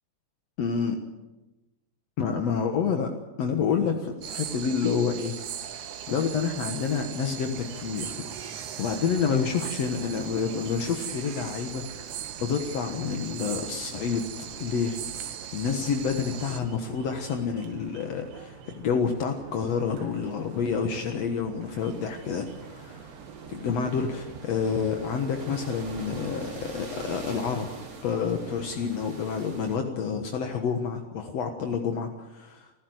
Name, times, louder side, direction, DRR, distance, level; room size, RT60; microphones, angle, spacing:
voice 1, 0.6-1.0 2.2-3.1 3.4-14.2 14.6-15.0 15.5-23.1 23.5-27.7 28.0-32.7, left 6 dB, 60° left, 4 dB, 1.7 m, -29 dB
sound 1, 4.2-16.6, right 10 dB, 70° right, 3.3 m, -39 dB
sound 2, 7.5-26.3, right 7 dB, 90° right, 3.9 m, -46 dB
sound 3, 21.8-29.8, right 3 dB, 40° right, 4.4 m, -43 dB
28.0 x 15.5 x 8.0 m, 1.1 s
omnidirectional pair, 4.9 m